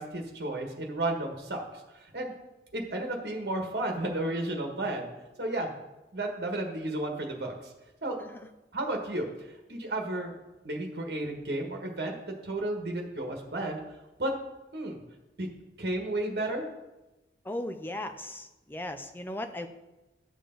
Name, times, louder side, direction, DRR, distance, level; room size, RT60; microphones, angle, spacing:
voice 1, 0.0-1.6 2.1-2.3 2.7-5.1 5.4-5.7 6.1-7.5 8.0-8.2 8.7-9.3 9.7-10.3 10.6-12.1 12.4-13.8 14.2-14.3 14.7-15.0 15.4-15.5 15.8-16.7, right 1 dB, 65° right, 2 dB, 1.5 m, -32 dB
voice 2, 17.5-19.7, left 1 dB, 10° left, 7 dB, 0.5 m, -37 dB
11.0 x 6.6 x 3.9 m, 1.0 s
head